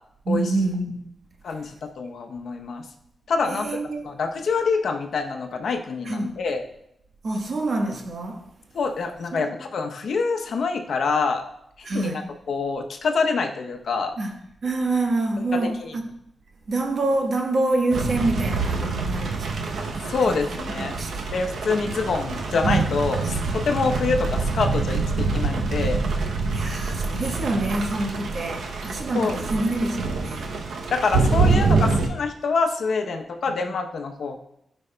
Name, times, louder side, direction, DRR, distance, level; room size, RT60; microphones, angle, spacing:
voice 1, 0.2-1.0 3.4-4.1 6.0-6.4 7.2-8.5 9.3-9.5 11.8-12.3 14.2-14.4 14.6-16.1 16.7-19.8 20.3-21.3 23.2-23.3 26.5-30.5 31.4-31.9, right 2 dB, 60° right, 1.1 m, -27 dB
voice 2, 1.4-2.8 3.3-3.8 4.0-6.6 8.7-11.4 11.8-12.2 12.5-14.1 15.8-15.9 20.1-21.0 21.3-26.0 29.1-29.4 30.9-34.4, left 4 dB, 75° left, 0.7 m, -26 dB
sound 1, 17.9-32.1, right 4 dB, 85° right, 0.7 m, -25 dB
12.0 x 5.2 x 2.2 m
cardioid pair, 65°, 0 cm